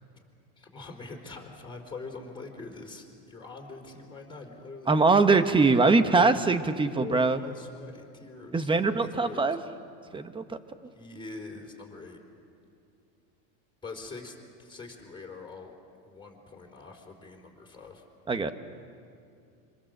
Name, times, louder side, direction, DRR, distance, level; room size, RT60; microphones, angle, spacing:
voice 1, 0.6-5.0 6.1-6.4 6.6-9.6 10.9-12.2 13.8-15.7 16.0-18.0, left 3 dB, 10° left, 0 dB, 4.0 m, -44 dB
voice 2, 4.9-7.4 8.5-9.6 10.1-10.6 18.3-18.5, right 3 dB, 10° right, 10 dB, 1.0 m, -22 dB
26.5 x 25.5 x 7.7 m, 2.4 s
supercardioid pair, 140°, 47 cm